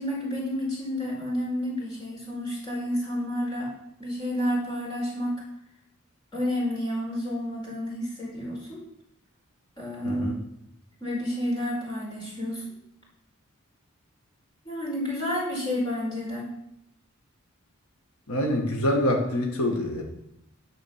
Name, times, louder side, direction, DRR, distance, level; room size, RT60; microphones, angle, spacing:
voice 1, 0.0-3.7 4.0-5.3 6.3-8.8 9.8-10.3 11.0-12.6 14.6-16.4, left 1 dB, 20° left, -4 dB, 4.4 m, -30 dB
voice 2, 10.0-10.3 18.3-20.0, left 1 dB, 90° left, 1 dB, 1.9 m, -25 dB
13.5 x 5.0 x 6.1 m, 0.78 s
head